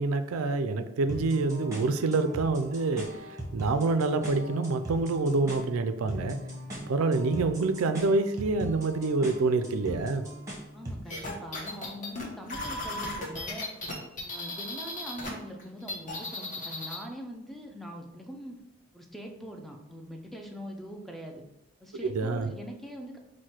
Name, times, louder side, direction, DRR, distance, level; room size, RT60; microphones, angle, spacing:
voice 1, 0.0-6.4 6.9-10.3 22.0-22.5, right 3 dB, 75° right, 10 dB, 0.4 m, -27 dB
sound 1, 1.1-11.1, equal, 15° right, 1.0 m, -40 dB
voice 2, 10.7-13.7 14.1-18.6 18.9-21.4 21.8-23.2, equal, ahead, 2 dB, 0.4 m, -42 dB
sound 2, 11.1-15.3 15.6-17.0, left 2 dB, 40° left, 0.9 m, -36 dB
4.7 x 2.2 x 4.3 m, 0.89 s
head